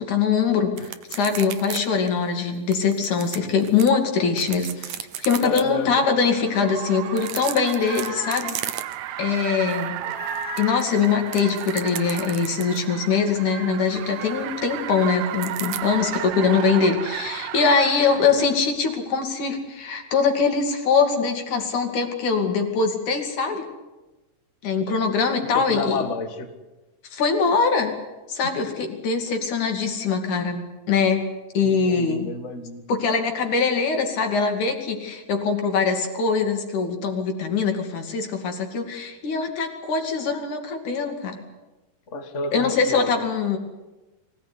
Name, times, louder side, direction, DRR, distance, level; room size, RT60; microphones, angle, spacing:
voice 1, 0.0-8.6 9.2-10.0 10.6-23.7 24.6-26.1 27.1-27.9 28.3-31.2 31.5-32.3 32.9-41.4 42.5-43.6, left 5 dB, 50° left, 4 dB, 3.8 m, -23 dB
sound 1, 0.8-1.8 2.1-2.2 2.7-3.9 4.3-5.6 7.1-9.2 9.6-9.8 10.1-12.9 15.4-15.8, right 11 dB, 70° right, 2.0 m, -34 dB
Car, 4.6-18.6, right 12 dB, 90° right, 3.1 m, -34 dB
voice 2, 5.4-6.0 24.8-24.9 25.5-26.5 31.6-32.9 42.1-43.1, left 3 dB, 80° left, 6 dB, 0.6 m, -30 dB
sound 2, 7.5-8.6 10.0-11.0 13.8-14.5, left 3 dB, 35° left, 3.0 m, -39 dB
23.5 x 17.5 x 9.7 m, 1.1 s
omnidirectional pair, 4.6 m